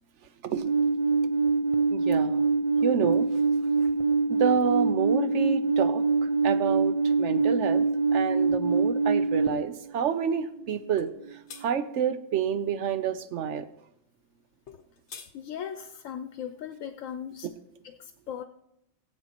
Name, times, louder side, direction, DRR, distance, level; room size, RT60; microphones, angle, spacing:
Alarm, 0.6-9.5, right 4 dB, 40° right, 0.6 m, -24 dB
voice 1, 1.9-2.4 2.8-3.3 4.3-7.9 8.1-11.1 11.6-13.7 17.4-17.5, right 8 dB, 70° right, 10 dB, 1.0 m, -29 dB
sound 1, 11.0-11.1 11.5-11.7 14.7-15.3, left 6 dB, 60° left, 1.1 m, -44 dB
voice 2, 15.3-17.5 17.8-18.4, left 8 dB, 90° left, 8 dB, 1.0 m, -38 dB
18.5 x 8.0 x 2.9 m, 0.79 s
omnidirectional pair, 1.3 m